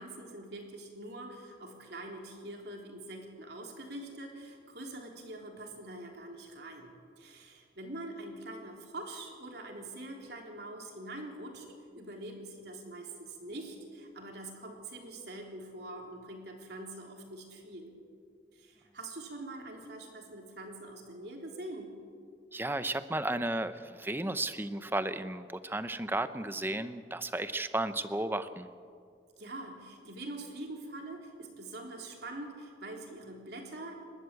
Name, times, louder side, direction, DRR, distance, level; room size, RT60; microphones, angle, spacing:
voice 1, 0.0-6.9 7.2-11.7 11.9-17.9 18.5-22.0 29.4-34.0, right 2 dB, 60° right, 1 dB, 3.7 m, -44 dB
voice 2, 22.5-28.7, right 2 dB, 10° right, 11 dB, 0.8 m, -34 dB
28.5 x 12.5 x 8.4 m, 2.2 s
head